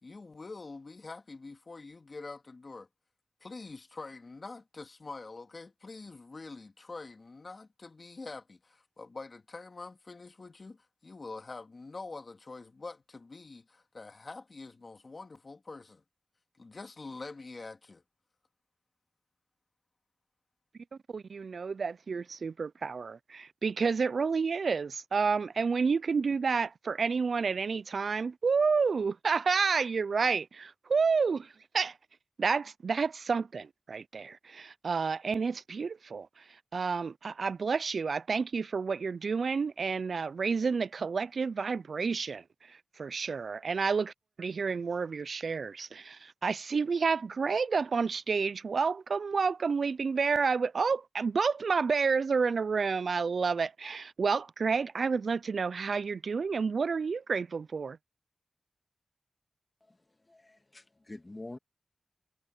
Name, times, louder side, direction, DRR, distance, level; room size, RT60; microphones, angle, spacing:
voice 1, 0.0-2.9 3.4-16.0 16.6-18.0, left 3 dB, 50° left, 2.1 m, -45 dB
voice 2, 21.1-31.9 32.4-36.4 36.7-44.1 44.4-58.0, right 5 dB, 75° right, 0.3 m, -30 dB
voice 3, 59.8-61.6, left 2 dB, 30° left, 1.9 m, -47 dB
wide cardioid pair, 70°, 0 cm